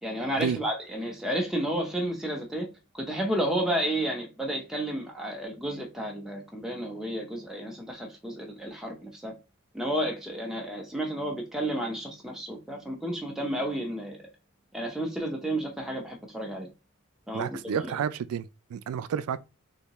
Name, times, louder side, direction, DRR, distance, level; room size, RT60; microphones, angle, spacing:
voice 1, 0.0-2.7 2.9-9.3 9.7-14.2 14.7-16.7 17.3-17.9, right 1 dB, ahead, 0.6 m, -31 dB
voice 2, 17.3-19.4, right 7 dB, 85° right, 0.3 m, -31 dB
3.3 x 2.7 x 2.9 m
head